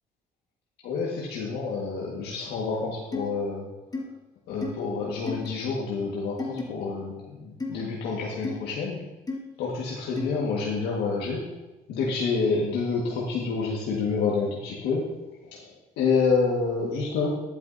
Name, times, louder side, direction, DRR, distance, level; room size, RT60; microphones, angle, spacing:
voice 1, 0.8-3.7 4.5-9.0 9.6-11.4 11.9-15.1 15.5-15.7 16.0-17.3, left 4 dB, 80° left, -4 dB, 1.7 m, -28 dB
sound 1, 3.1-3.3 3.9-4.0 4.6-4.7 5.3-5.5 6.4-6.6 7.6-7.8 8.4-8.6 9.3-9.4 10.2-10.3, left 3 dB, 20° left, 1.4 m, -32 dB
11.0 x 9.1 x 2.7 m, 1.0 s
cardioid pair, 110°, 17 cm